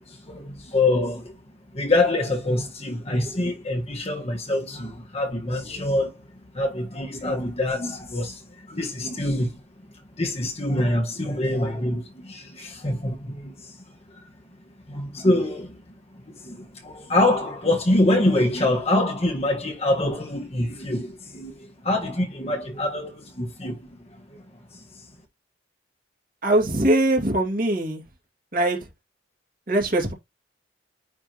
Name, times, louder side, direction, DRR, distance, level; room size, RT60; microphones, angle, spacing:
voice 1, 0.1-1.4 1.7-6.1 6.5-8.4 8.7-9.6 10.2-13.7 14.9-15.8 16.3-24.4, left 1 dB, 35° left, 1.5 m, -25 dB
voice 2, 26.4-28.0 28.5-28.8 29.7-30.1, right 1 dB, 50° right, 2.5 m, -21 dB
9.7 x 3.6 x 3.0 m
head